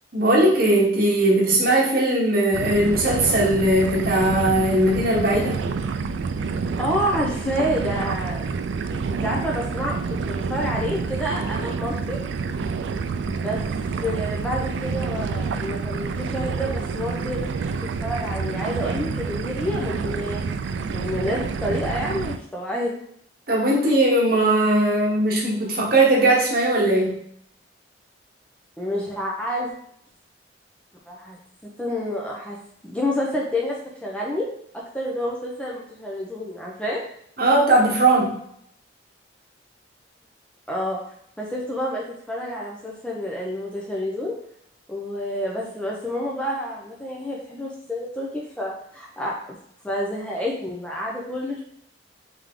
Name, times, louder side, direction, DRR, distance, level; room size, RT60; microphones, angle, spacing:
voice 1, 0.1-5.6 23.5-27.1 37.4-38.4, right 1 dB, 50° right, -3 dB, 1.1 m, -19 dB
sound 1, 2.5-22.4, right 5 dB, 80° right, 0.3 m, -28 dB
voice 2, 6.8-8.6 9.1-12.2 13.2-13.6 14.0-17.7 18.0-20.4 20.9-22.9 28.8-29.7 31.1-31.4 31.8-32.6 32.8-34.5 34.9-37.0 40.7-41.0 41.4-44.4 44.9-49.3 49.8-51.6, left 1 dB, 5° left, -3 dB, 0.5 m, -28 dB
3.6 x 3.3 x 3.6 m, 0.69 s
head